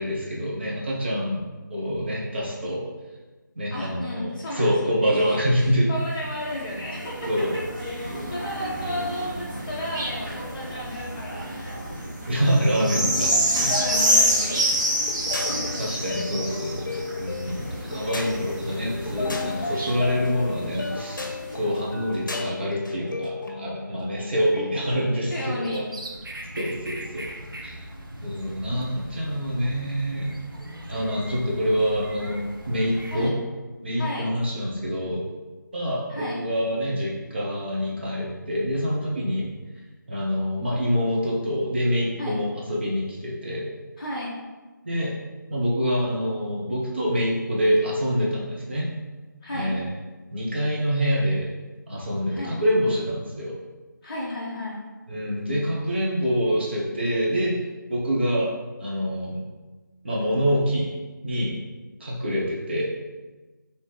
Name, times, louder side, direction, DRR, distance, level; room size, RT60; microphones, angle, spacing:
voice 1, 0.0-2.9 3.5-5.9 7.3-7.5 12.3-13.7 15.7-25.8 26.6-27.3 27.6-27.8 28.2-30.3 30.9-32.4 32.7-33.4 33.8-35.2 35.7-39.5 40.1-43.6 44.8-45.1 45.5-48.9 49.5-49.9 50.3-51.5 51.9-53.6 55.1-57.5 57.9-58.5 58.8-59.5 60.0-60.9 61.2-61.6 62.0-62.9, equal, 35° right, -5 dB, 0.7 m, -26 dB
voice 2, 3.7-11.8 13.1-14.6 25.3-25.9 33.1-33.4 34.0-34.3 36.1-36.5 42.2-42.4 44.0-44.3 49.4-49.7 52.3-52.6 54.0-54.8, left 1 dB, 20° left, -9 dB, 0.6 m, -33 dB
sound 1, 6.0-21.8 22.4-22.5, equal, 60° right, 1.2 m, -28 dB
sound 2, 13.0-25.1, left 3 dB, 70° left, 0.6 m, -34 dB
sound 3, 25.6-33.3, right 1 dB, 90° right, 0.7 m, -40 dB
3.9 x 2.7 x 3.1 m, 1.3 s
figure-of-eight pair, 165°, 11 cm